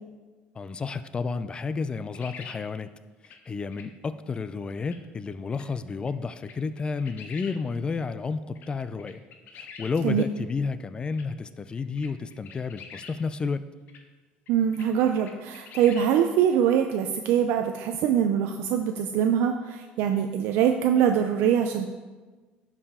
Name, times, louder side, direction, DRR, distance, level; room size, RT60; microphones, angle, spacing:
voice 1, 0.6-2.9 3.5-9.2 9.6-13.7, left 4 dB, 25° left, 12 dB, 0.4 m, -31 dB
sound 1, 2.1-2.6 3.2-3.4 3.7-3.8 4.8-5.0 5.5-5.6 6.1-6.2 6.4-7.5 8.0-8.1 8.5-8.7 9.0-9.9 10.4-10.5 11.1-11.2 11.8-13.1 13.9-14.0 14.5-14.9 15.2-16.1, left 6 dB, 60° left, 0.9 m, -44 dB
voice 2, 14.5-21.9, right 9 dB, 75° right, 6 dB, 0.5 m, -23 dB
11.0 x 4.9 x 3.6 m, 1.3 s
cardioid pair, 115°, 4 cm